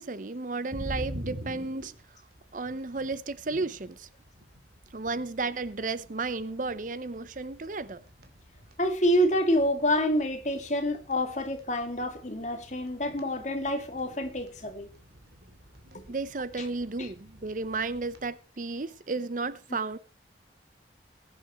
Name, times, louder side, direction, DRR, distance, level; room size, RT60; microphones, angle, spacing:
voice 1, 0.0-1.9 2.5-4.1 4.9-8.0 16.1-20.0, right 3 dB, 45° right, 0.7 m, -33 dB
sound 1, 0.7-18.3, equal, 60° right, 2.5 m, -47 dB
voice 2, 8.8-14.9 15.9-16.0 16.6-16.7 17.0-17.1, equal, 40° left, 2.1 m, -27 dB
20.0 x 9.8 x 3.0 m
head